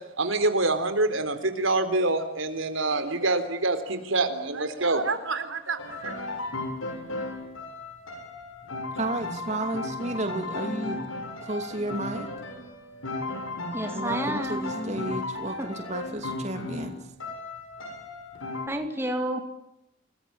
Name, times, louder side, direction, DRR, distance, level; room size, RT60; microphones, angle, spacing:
voice 1, 0.2-6.2, right 2 dB, 80° right, 9 dB, 3.9 m, -26 dB
sound 1, 5.8-18.7, left 2 dB, 85° left, 7.3 m, -35 dB
voice 2, 8.9-11.1 11.4-12.3 13.9-17.0, right 2 dB, 35° right, 6 dB, 2.8 m, -32 dB
voice 3, 13.7-14.7 15.6-15.7 18.7-19.4, right 1 dB, 10° right, 5 dB, 2.6 m, -30 dB
29.5 x 21.0 x 8.7 m, 0.83 s
head